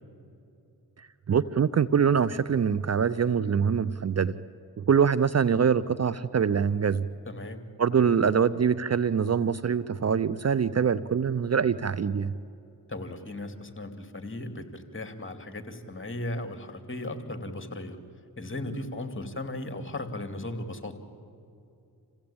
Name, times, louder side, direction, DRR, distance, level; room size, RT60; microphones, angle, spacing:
voice 1, 1.0-4.4 4.8-7.1 7.8-12.3, right 7 dB, 40° right, 17 dB, 0.7 m, -24 dB
voice 2, 7.3-7.6 12.9-18.0 18.4-20.9, left 1 dB, 30° left, 7 dB, 2.7 m, -36 dB
27.5 x 16.0 x 8.7 m, 2.7 s
supercardioid pair, 45°, 40 cm